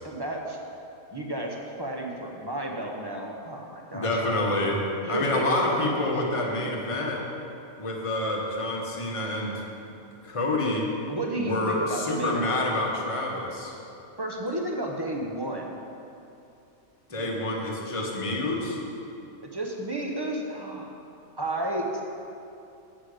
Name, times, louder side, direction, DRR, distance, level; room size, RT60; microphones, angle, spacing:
voice 1, 0.0-0.6 1.1-4.5 5.0-5.9 6.3-6.7 11.1-12.7 14.2-15.8 17.2-17.6 19.4-21.0 21.4-22.0, right 1 dB, 25° right, 0 dB, 0.6 m, -32 dB
voice 2, 3.9-4.8 5.1-7.2 7.8-9.6 10.2-10.9 11.4-13.7 17.1-18.8, left 2 dB, 25° left, -1 dB, 1.1 m, -27 dB
8.4 x 8.1 x 4.9 m, 2.8 s
omnidirectional pair, 1.5 m